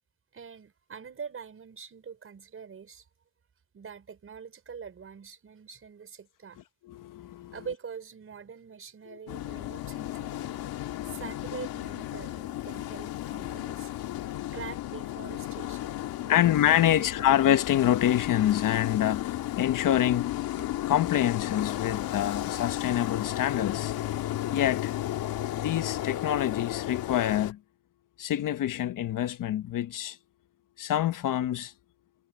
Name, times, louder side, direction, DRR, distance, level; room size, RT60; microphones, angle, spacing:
voice 1, 0.3-3.1 3.7-6.6 7.5-10.6 11.1-13.9 14.5-17.4, right 6 dB, 35° right, 5.6 m, -44 dB
voice 2, 6.8-7.5 9.1-9.2 10.1-10.2 10.8-11.3 12.7-12.9 13.4-13.6 14.0-14.6 16.3-20.4 20.9-23.9 24.5-24.9 25.6-27.6 28.2-30.2 30.8-31.7, left 11 dB, 55° left, 1.1 m, -27 dB
sound 1, 9.3-27.5, left 14 dB, 70° left, 2.0 m, -34 dB
sound 2, 19.6-19.8 20.6-20.9 21.6-21.8 22.6-22.7 23.6-23.9 24.6-24.8 25.6-25.7, left 5 dB, 30° left, 6.5 m, -46 dB
cardioid pair, 130°, 37 cm